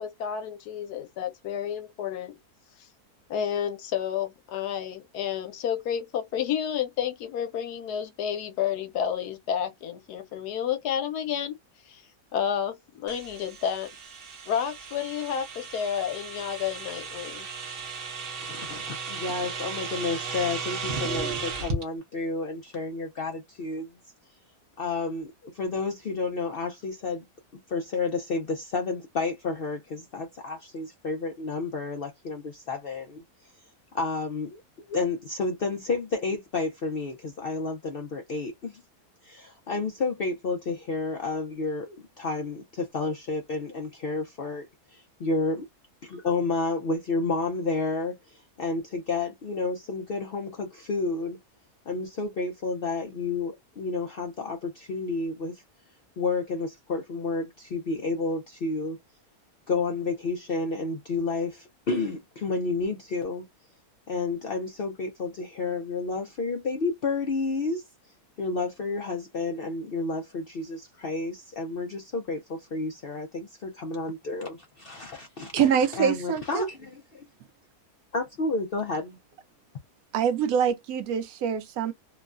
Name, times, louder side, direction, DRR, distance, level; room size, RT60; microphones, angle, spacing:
voice 1, 0.0-2.3 3.3-11.5 11.9-12.0 12.3-13.9 14.5-17.5, left 8 dB, 90° left, 1.2 m, -30 dB
sound 1, 13.1-21.8, right 4 dB, 45° right, 0.8 m, -35 dB
voice 2, 18.4-23.9 24.8-27.2 27.7-33.2 33.9-34.6 34.9-38.8 39.2-45.6 46.0-51.4 51.9-55.6 56.2-59.0 59.7-63.5 64.1-67.8 68.4-77.3 78.1-79.2, left 3 dB, 65° left, 0.5 m, -31 dB
voice 3, 75.5-76.7 80.1-81.9, right 7 dB, 75° right, 1.0 m, -25 dB
3.0 x 2.1 x 2.4 m
omnidirectional pair, 1.6 m